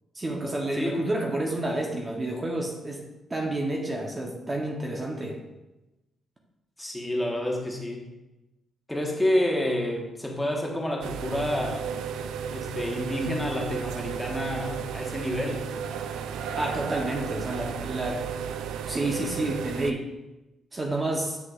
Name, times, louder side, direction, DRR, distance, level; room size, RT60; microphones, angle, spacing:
voice 1, 0.1-5.4 16.6-18.3 18.9-20.1 20.7-21.4, right 2 dB, 25° right, 0 dB, 1.0 m, -30 dB
voice 2, 6.8-8.1 8.9-12.0 12.5-15.7, left 1 dB, 10° left, -1 dB, 1.4 m, -29 dB
sound 1, 11.0-19.9, right 7 dB, 90° right, 0.3 m, -34 dB
7.8 x 5.8 x 2.5 m, 1.0 s
cardioid pair, 80°, 0 cm